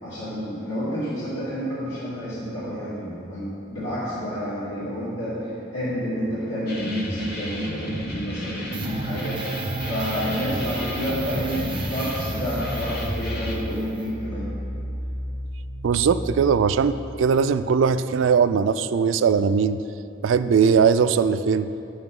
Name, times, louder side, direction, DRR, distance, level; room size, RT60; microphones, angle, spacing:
voice 1, 0.0-9.5 9.8-14.5, equal, 80° left, -11 dB, 2.2 m, -29 dB
sound 1, 6.7-13.5, equal, 55° left, 1.2 m, -33 dB
sound 2, 8.7-17.2, right 1 dB, 25° right, 0.7 m, -33 dB
voice 2, 15.8-19.8 20.2-21.7, right 6 dB, 85° right, 12 dB, 0.3 m, -20 dB
11.5 x 7.9 x 3.7 m, 2.9 s
head